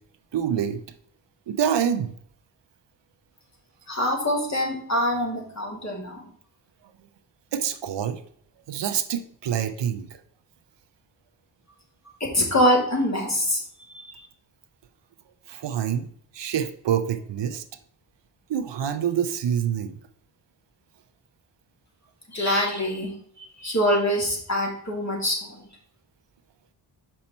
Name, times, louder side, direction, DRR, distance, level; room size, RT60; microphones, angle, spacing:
voice 1, 0.3-0.8 1.5-2.1 7.5-8.2 8.7-10.1 15.5-16.1 16.3-17.6 18.5-20.0, right 9 dB, 65° right, 9 dB, 0.7 m, -26 dB
voice 2, 3.9-6.3 12.2-14.3 22.3-25.7, equal, 35° left, -1 dB, 2.8 m, -25 dB
5.6 x 5.4 x 4.3 m, 0.63 s
cardioid pair, 50°, 46 cm